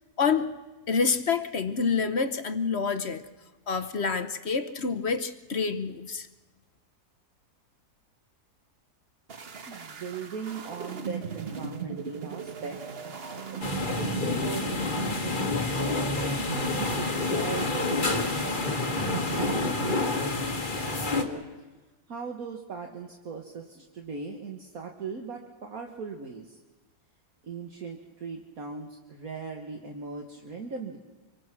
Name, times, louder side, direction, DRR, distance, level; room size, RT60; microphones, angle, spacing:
voice 1, 0.2-0.5 0.9-3.2 3.7-6.3, left 5 dB, 45° left, 10 dB, 1.0 m, -27 dB
sound 1, 9.3-20.0, right 6 dB, 40° right, 1.2 m, -37 dB
voice 2, 9.7-12.8 13.5-21.5 22.1-26.6 27.4-31.0, right 4 dB, 60° right, 2 dB, 1.9 m, -39 dB
sound 2, 13.6-21.2, left 3 dB, 30° left, 1.8 m, -28 dB
26.5 x 24.0 x 6.1 m, 1.2 s
omnidirectional pair, 1.7 m